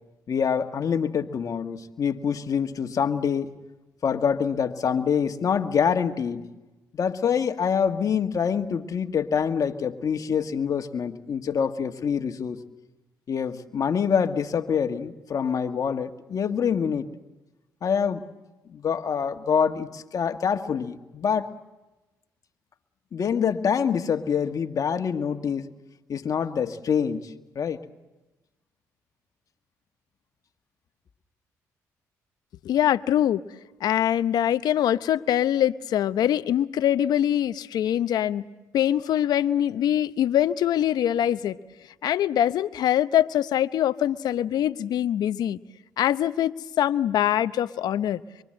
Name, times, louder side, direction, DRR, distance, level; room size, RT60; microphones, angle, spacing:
voice 1, 0.3-3.5 4.0-6.5 6.9-12.6 13.3-17.1 17.8-18.2 18.7-21.5 23.1-25.7 26.1-27.8, left 7 dB, 55° left, 7 dB, 1.6 m, -25 dB
voice 2, 32.6-33.4 33.8-38.4 38.7-41.6 42.0-45.6 46.0-48.2, left 11 dB, 70° left, 14 dB, 0.8 m, -23 dB
26.0 x 24.0 x 7.8 m, 1.1 s
supercardioid pair, 60°, 7 cm